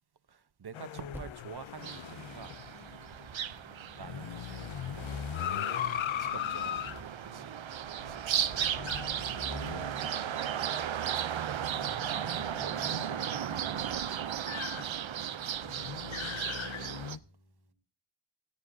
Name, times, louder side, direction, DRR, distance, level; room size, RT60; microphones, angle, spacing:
voice 1, 0.3-2.6 4.0-5.4 6.2-7.6 8.0-9.3 10.2-13.5 13.8-16.9, right 6 dB, 55° right, 1.0 m, -50 dB
sound 1, 0.7-10.7 11.0-11.1 11.7-17.2, left 10 dB, 90° left, 0.6 m, -39 dB
Percussion, 1.1-6.0, equal, 5° right, 1.3 m, -55 dB
sound 2, 1.8-17.2, right 9 dB, 80° right, 0.7 m, -36 dB
voice 2, 6.0-6.5 7.0-7.2 17.1-17.7, left 2 dB, 55° left, 3.4 m, -60 dB
19.5 x 15.0 x 2.7 m
wide cardioid pair, 65°, 45 cm